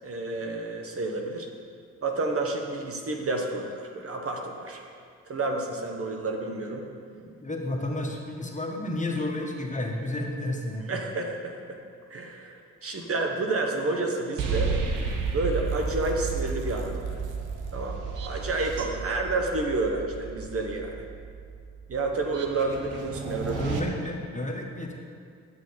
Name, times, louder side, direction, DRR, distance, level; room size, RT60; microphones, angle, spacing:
voice 1, 0.0-1.5 2.0-4.8 5.3-6.8 10.9-11.8 12.1-14.7 15.3-17.2 17.7-21.0 21.9-23.6, right 2 dB, 45° right, 2 dB, 1.1 m, -30 dB
voice 2, 7.1-11.0 23.5-24.9, left 1 dB, 25° left, 1 dB, 1.3 m, -32 dB
sound 1, 14.4-23.8, right 5 dB, 70° right, 1.0 m, -32 dB
8.6 x 6.2 x 4.2 m, 2.2 s
supercardioid pair, 50°, 32 cm